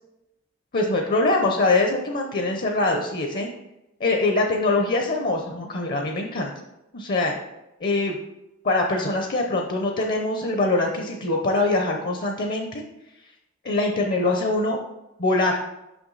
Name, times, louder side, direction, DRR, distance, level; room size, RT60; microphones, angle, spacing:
voice 1, 0.7-3.5 4.0-6.5 6.9-7.4 7.8-8.2 8.6-12.8 13.6-14.8 15.2-15.6, left 2 dB, 45° left, 2 dB, 0.7 m, -23 dB
6.0 x 6.0 x 4.0 m, 0.93 s
head